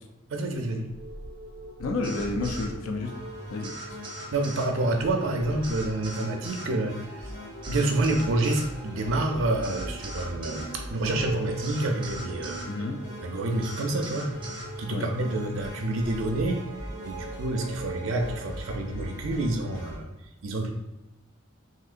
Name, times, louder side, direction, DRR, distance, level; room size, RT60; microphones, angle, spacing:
voice 1, 0.3-0.9 4.3-7.3 7.7-12.6 13.2-14.3 14.8-16.7 17.0-20.1 20.4-20.7, right 2 dB, 75° right, 3 dB, 0.5 m, -28 dB
sound 1, 0.5-18.6, right 1 dB, 35° left, 0.9 m, -42 dB
voice 2, 1.8-3.1 3.5-3.7 12.7-13.0 14.9-15.1, left 3 dB, 85° left, 4 dB, 0.4 m, -30 dB
sound 2, 2.0-2.7 3.6-4.7 5.6-6.7 7.6-8.7 9.6-10.7 11.6-12.7 13.6-14.7, right 1 dB, 25° right, 0.5 m, -41 dB
sound 3, 3.0-20.0, equal, 60° left, 1.3 m, -42 dB
3.7 x 2.6 x 2.4 m, 1.0 s
head